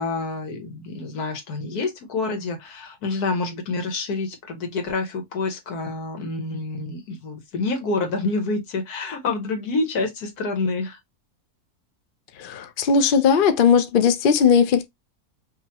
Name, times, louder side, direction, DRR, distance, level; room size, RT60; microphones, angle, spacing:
voice 1, 0.0-11.0, left 3 dB, 80° left, 1.6 m, -27 dB
voice 2, 12.4-14.9, left 6 dB, 55° left, 0.6 m, -18 dB
5.5 x 2.5 x 2.9 m
omnidirectional pair, 1.6 m